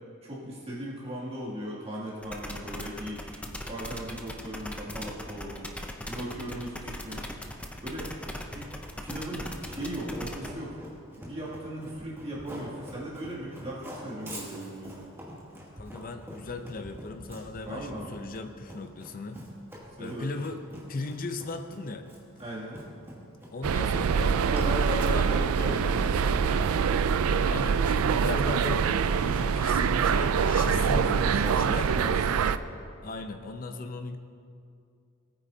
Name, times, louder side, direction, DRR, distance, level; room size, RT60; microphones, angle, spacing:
voice 1, 0.2-5.7 6.1-7.4 7.8-8.1 8.5-8.7 9.0-10.8 11.1-15.1 17.6-18.2 20.0-20.3 22.4-22.8 24.5-26.6 30.6-32.4, right 1 dB, 30° right, -8 dB, 2.6 m, -37 dB
sound 1, 2.2-10.5, left 1 dB, 5° left, 0.7 m, -39 dB
Run, 8.7-27.4, equal, 10° right, 2.3 m, -45 dB
voice 2, 15.8-19.4 20.0-20.6 20.9-22.1 23.5-25.3 27.3-31.9 33.0-34.2, left 3 dB, 40° left, 7 dB, 0.6 m, -37 dB
sound 2, 23.6-32.6, right 6 dB, 80° right, 0.4 m, -25 dB
19.0 x 9.2 x 2.8 m, 2.4 s
head